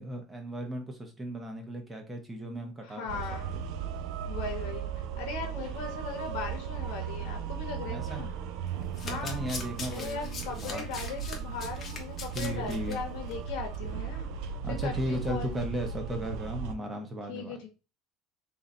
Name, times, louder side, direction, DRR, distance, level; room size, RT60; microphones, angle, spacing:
voice 1, 0.0-3.1 3.5-3.6 7.9-8.2 9.1-10.8 12.3-13.0 14.6-17.7, right 1 dB, 10° right, 0.9 m, -36 dB
voice 2, 2.8-3.6 4.3-8.3 9.0-9.5 9.9-15.6 17.3-17.7, left 5 dB, 80° left, 1.0 m, -39 dB
sound 1, 3.1-16.7, right 7 dB, 70° right, 0.4 m, -36 dB
Domestic sounds home sounds, 8.8-13.0 13.3-13.5 13.7-13.8, left 4 dB, 30° left, 0.9 m, -41 dB
3.2 x 2.8 x 3.8 m
cardioid pair, 150°, 0 cm